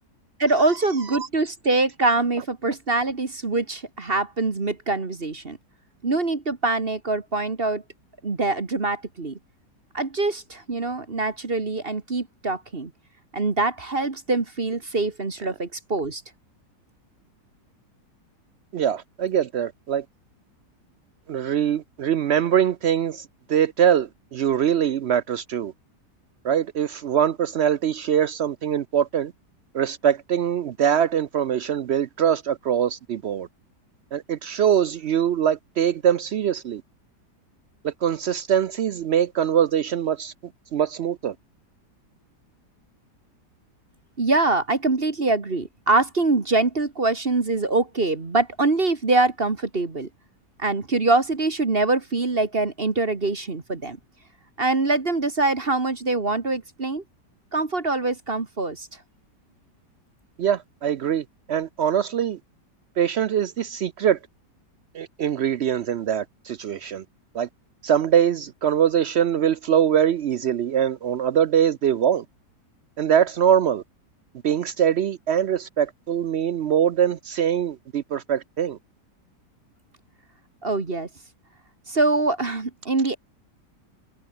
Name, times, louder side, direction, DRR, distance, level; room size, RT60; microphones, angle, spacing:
voice 1, 0.4-5.6 6.0-7.8 8.2-9.4 9.9-12.9 13.3-16.2 44.2-50.1 50.6-54.0 54.6-57.0 57.5-58.9 80.6-81.1 81.9-83.2, right 3 dB, 35° right, 1.9 m, -24 dB
voice 2, 18.7-20.0 21.3-25.7 26.4-29.3 29.7-33.5 34.1-36.8 37.8-40.3 40.7-41.3 60.4-62.4 63.0-64.2 64.9-67.0 67.3-67.5 67.8-72.2 73.0-73.8 74.4-78.8, right 9 dB, 75° right, 0.6 m, -23 dB
omnidirectional pair, 1.8 m